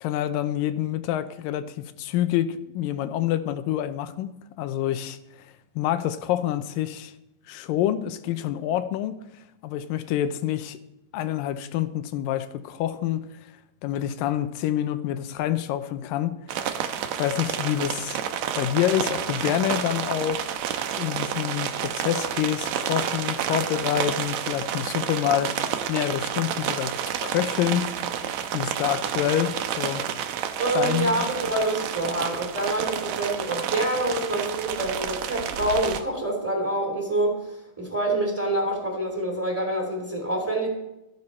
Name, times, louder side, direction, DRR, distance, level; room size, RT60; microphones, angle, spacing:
voice 1, 0.0-5.2 5.8-7.1 7.5-9.2 9.6-10.8 11.1-13.3 13.8-18.2 18.6-20.5 21.0-25.5 25.9-26.9 27.2-27.9 28.2-28.3 28.5-30.0 30.7-31.3, left 12 dB, 80° left, 11 dB, 2.3 m, -27 dB
sound 1, 16.5-36.0, right 9 dB, 75° right, 1.7 m, -30 dB
voice 2, 30.6-40.7, right 1 dB, 5° right, 0 dB, 2.4 m, -26 dB
13.5 x 11.0 x 4.3 m, 0.90 s
omnidirectional pair, 4.1 m